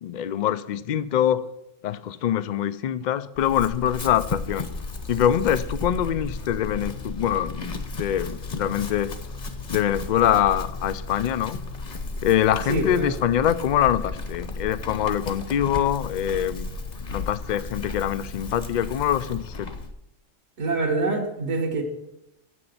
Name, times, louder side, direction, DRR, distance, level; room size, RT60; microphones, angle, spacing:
voice 1, 0.0-1.5 1.8-4.7 5.1-9.1 9.7-11.6 12.2-16.7 17.0-19.7, left 10 dB, 70° left, 14 dB, 0.4 m, -24 dB
Chewing mastication / Livestock farm animals working animals, 3.3-19.9, left 3 dB, 40° left, 0.9 m, -34 dB
voice 2, 12.7-13.1 20.6-21.8, right 3 dB, 65° right, -4 dB, 1.8 m, -25 dB
7.8 x 6.3 x 7.8 m, 0.85 s
omnidirectional pair, 1.3 m